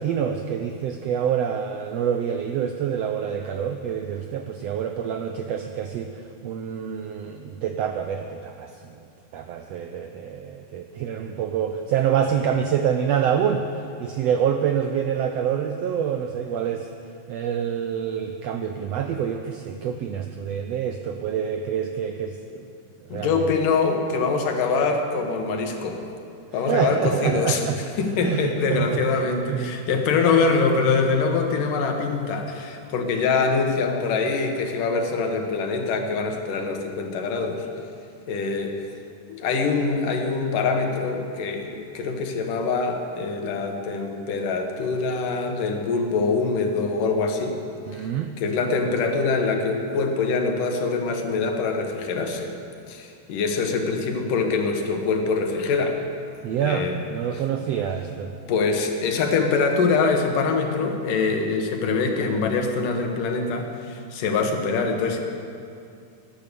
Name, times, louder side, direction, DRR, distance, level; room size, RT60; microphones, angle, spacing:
voice 1, 0.0-6.1 6.4-8.7 9.3-13.6 14.0-16.9 17.3-22.7 23.1-23.4 26.7-27.8 28.2-29.8 47.9-48.3 56.4-58.3, right 8 dB, 90° right, 6 dB, 1.4 m, -26 dB
voice 2, 23.1-26.0 26.5-37.7 38.3-38.8 39.3-47.6 47.9-48.1 48.4-52.5 52.9-56.0 56.6-57.0 57.3-57.4 58.5-65.2, left 4 dB, 80° left, 4 dB, 3.0 m, -24 dB
18.5 x 10.5 x 6.9 m, 2.5 s
omnidirectional pair, 3.7 m